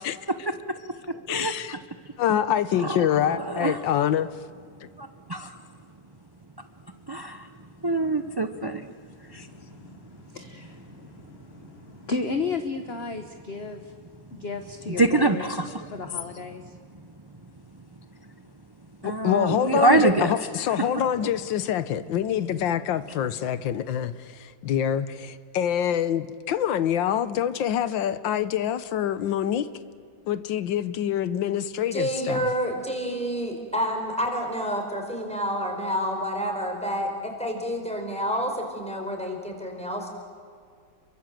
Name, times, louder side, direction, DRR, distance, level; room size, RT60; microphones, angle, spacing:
voice 1, 1.3-1.8 2.2-4.3 19.0-29.7 30.3-32.4, left 10 dB, 90° left, 14 dB, 1.6 m, -26 dB
voice 2, 2.8-3.8 5.0-5.5 7.1-7.5 7.8-8.9 9.3-9.5 15.0-15.9 19.0-20.3 20.9-21.0, right 2 dB, 25° right, 7 dB, 0.6 m, -24 dB
voice 3, 9.3-13.9 14.3-15.5 15.9-16.7, left 4 dB, 35° left, 7 dB, 1.3 m, -34 dB
voice 4, 31.9-40.1, equal, 5° left, 2 dB, 4.5 m, -29 dB
29.5 x 23.5 x 7.6 m, 2.1 s
omnidirectional pair, 2.0 m